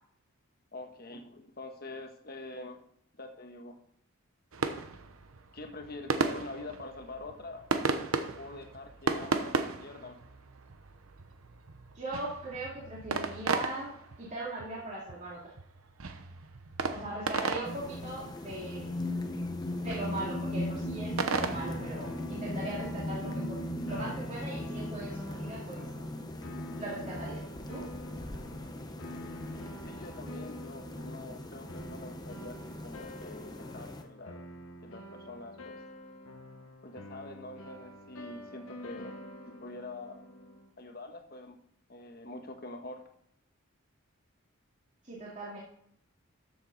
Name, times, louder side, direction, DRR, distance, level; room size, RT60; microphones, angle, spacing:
voice 1, 0.7-2.8 3.2-3.8 5.5-7.6 8.3-10.2 29.9-34.4 34.8-35.8 36.8-39.2 39.5-40.2 40.8-41.6 41.9-43.0, left 2 dB, 45° left, 4 dB, 1.4 m, -45 dB
sound 1, 4.5-22.2, right 3 dB, 75° right, 1.0 m, -36 dB
voice 2, 11.9-13.9 14.2-15.4 16.9-18.9 19.8-25.8 26.8-27.4 27.7-27.9 45.0-45.6, right 2 dB, 30° right, -6 dB, 2.5 m, -39 dB
sound 2, 17.6-34.0, left 1 dB, 20° left, 0.9 m, -39 dB
sound 3, 21.5-40.7, left 1 dB, 70° left, 1.2 m, -47 dB
13.5 x 7.2 x 4.1 m, 0.69 s
head